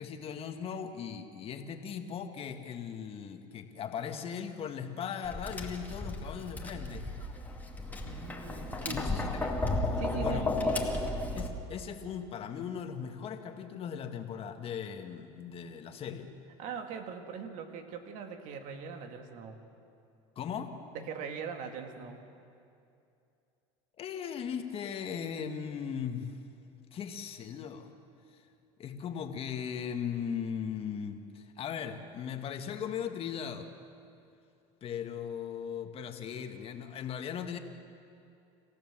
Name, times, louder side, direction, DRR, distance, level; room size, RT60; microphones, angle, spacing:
voice 1, 0.0-7.1 8.9-9.5 10.1-10.5 11.4-16.3 20.4-20.8 24.0-26.4 26.9-27.9 28.3-28.4 28.8-33.7 34.8-37.6, left 7 dB, 40° left, 6 dB, 1.9 m, -38 dB
Tap, 5.2-11.5, left 2 dB, 10° left, 2.5 m, -33 dB
voice 2, 8.0-9.6 10.0-11.1 16.6-19.6 20.9-22.2, right 6 dB, 60° right, 6 dB, 2.3 m, -41 dB
27.0 x 15.5 x 7.5 m, 2.6 s
supercardioid pair, 110°, 14 cm